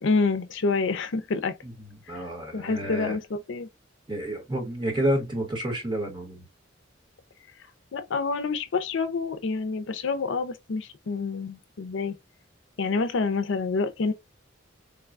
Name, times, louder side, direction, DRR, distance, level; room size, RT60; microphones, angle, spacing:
voice 1, 0.0-1.6 2.1-2.3 2.5-3.7 7.9-12.2 12.8-14.1, left 4 dB, 70° left, 0.5 m, -27 dB
voice 2, 2.1-3.2 4.1-6.4, right 1 dB, 25° right, 1.3 m, -29 dB
3.8 x 2.2 x 2.4 m
head